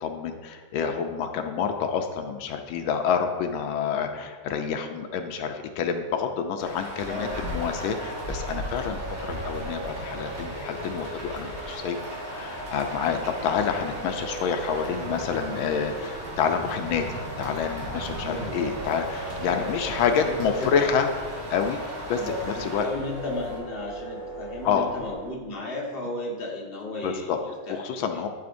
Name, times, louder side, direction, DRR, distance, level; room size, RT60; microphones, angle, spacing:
voice 1, 0.0-12.0 12.3-21.1 21.5-21.8 22.1-22.3 22.6-22.9 24.6-24.9 27.0-27.4 27.7-28.3, left 7 dB, 85° left, 5 dB, 1.4 m, -28 dB
Rain, 6.6-23.6, right 1 dB, 60° right, 2.2 m, -37 dB
sound 1, 7.0-25.3, right 1 dB, 35° right, 1.9 m, -39 dB
voice 2, 7.1-7.4 10.4-10.5 18.2-18.6 19.4-20.9 22.1-28.2, left 2 dB, 30° left, -3 dB, 1.4 m, -35 dB
12.0 x 4.9 x 2.6 m, 1.5 s
omnidirectional pair, 2.2 m